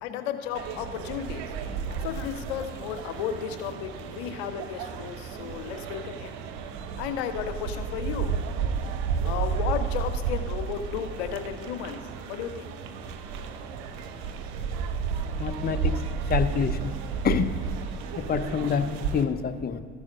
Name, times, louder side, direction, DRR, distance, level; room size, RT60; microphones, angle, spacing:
voice 1, 0.0-1.5 2.0-6.4 7.0-8.3 9.2-12.0 12.3-12.7, left 8 dB, 80° left, 8 dB, 0.7 m, -33 dB
sound 1, 0.5-19.2, right 6 dB, 75° right, 0.7 m, -32 dB
voice 2, 15.4-15.9 16.3-16.9 17.2-17.6 18.2-19.8, left 7 dB, 30° left, 10 dB, 0.6 m, -27 dB
13.5 x 4.9 x 5.4 m, 2.1 s
hypercardioid pair, 55°, 32 cm